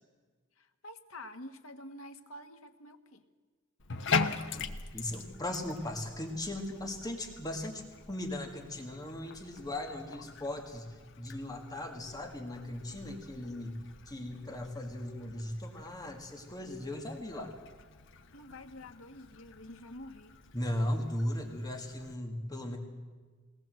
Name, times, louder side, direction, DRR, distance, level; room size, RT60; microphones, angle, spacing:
voice 1, 0.6-3.2 18.3-20.3, left 1 dB, 85° left, 6 dB, 1.5 m, -48 dB
Bathtub (filling or washing), 3.8-22.1, left 4 dB, 65° left, 1.2 m, -42 dB
voice 2, 4.9-7.8 8.1-10.9 11.2-13.8 14.1-17.5 20.5-22.8, left 1 dB, 20° left, 3 dB, 2.0 m, -37 dB
21.0 x 18.5 x 7.7 m, 1.4 s
head